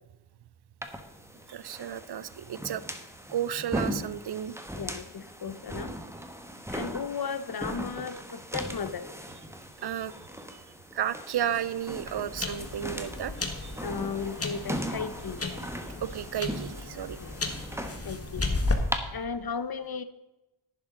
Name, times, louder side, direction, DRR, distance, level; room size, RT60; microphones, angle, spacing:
sound 1, 0.8-19.0, equal, 5° right, 1.2 m, -39 dB
voice 1, 1.5-2.8 3.3-4.5 9.8-10.1 10.5-10.6 10.9-13.3 13.6-13.8 16.0-17.2, right 10 dB, 55° right, 17 dB, 0.6 m, -33 dB
voice 2, 4.8-5.9 6.7-9.1 13.8-15.4 17.2-17.3 18.0-18.5 19.1-20.0, left 6 dB, 50° left, 12 dB, 0.9 m, -35 dB
sound 2, 11.4-18.7, left 3 dB, 30° left, 1.6 m, -34 dB
11.0 x 10.5 x 3.8 m, 1.0 s
wide cardioid pair, 75°, 49 cm